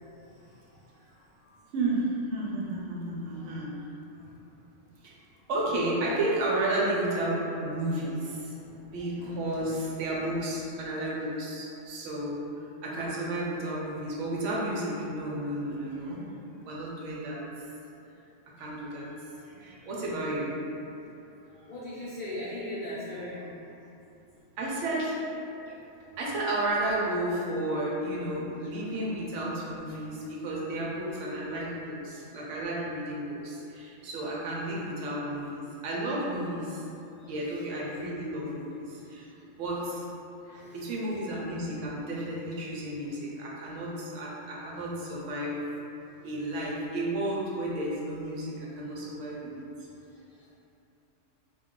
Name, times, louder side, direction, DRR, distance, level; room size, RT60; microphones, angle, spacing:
voice 1, 0.2-0.8 1.1-1.6 4.2-4.3 8.6-9.7 21.7-23.7 25.7-26.1 37.2-37.3 38.9-39.2 40.4-40.8 50.3-50.5, left 1 dB, 50° left, -10 dB, 0.7 m, -41 dB
voice 2, 1.7-3.7 5.0-5.1 5.5-8.5 8.9-16.3 16.7-17.4 18.6-20.6 24.6-25.3 26.2-36.8 37.3-39.3 39.6-40.1 40.7-45.6 46.2-49.7, right 1 dB, 75° right, -5 dB, 0.9 m, -32 dB
2.3 x 2.3 x 3.6 m, 2.8 s
omnidirectional pair, 1.3 m